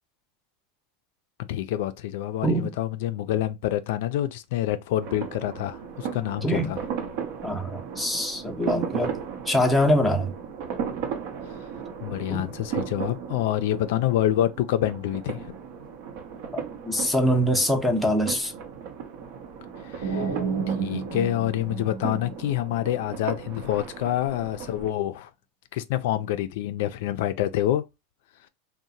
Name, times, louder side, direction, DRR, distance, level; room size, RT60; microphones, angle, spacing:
voice 1, 1.4-6.8 12.0-15.5 19.8-20.2 20.7-25.3 25.7-27.8, left 13 dB, 70° left, 0.3 m, -27 dB
sound 1, 5.0-24.9, right 7 dB, 60° right, 0.7 m, -36 dB
voice 2, 6.4-6.7 7.4-9.2 9.5-10.3 12.3-12.5 16.8-18.5, equal, ahead, 0.5 m, -23 dB
sound 2, 20.0-22.8, right 5 dB, 85° right, 0.9 m, -31 dB
2.8 x 2.1 x 2.6 m
supercardioid pair, 145°, 0 cm